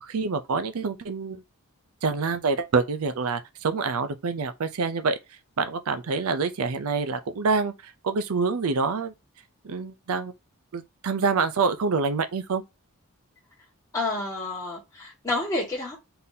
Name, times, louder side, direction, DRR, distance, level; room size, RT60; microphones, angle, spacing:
voice 1, 0.0-1.4 2.0-5.2 5.6-9.1 9.6-10.3 10.7-12.6, right 4 dB, 75° right, 0.5 m, -26 dB
voice 2, 13.9-16.0, left 2 dB, 15° left, 1.2 m, -29 dB
3.9 x 2.7 x 3.9 m
head